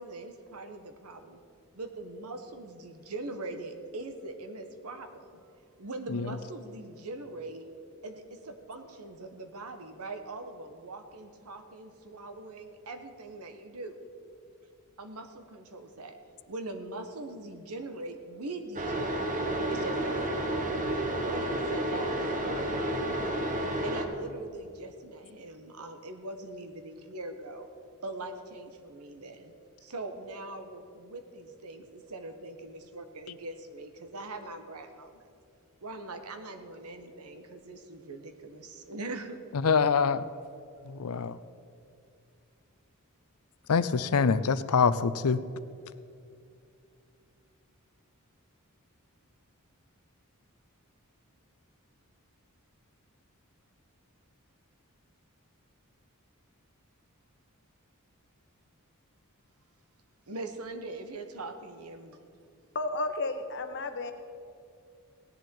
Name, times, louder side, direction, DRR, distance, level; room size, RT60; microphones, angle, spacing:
voice 1, 0.0-1.4 1.7-5.4 5.8-7.7 8.0-14.0 15.0-16.2 16.5-19.4 19.7-20.9 21.2-23.4 23.8-27.7 28.0-29.5 29.8-35.3 35.8-39.4 60.3-62.4, right 2 dB, 85° right, 6 dB, 1.2 m, -42 dB
sound 1, 18.7-24.0, right 1 dB, 35° right, 1.1 m, -31 dB
voice 2, 39.6-40.2 40.8-41.4 43.7-45.4, left 5 dB, 80° left, 15 dB, 0.5 m, -25 dB
voice 3, 62.7-64.1, left 2 dB, 55° left, 7 dB, 1.0 m, -32 dB
17.0 x 10.5 x 4.5 m, 2.5 s
head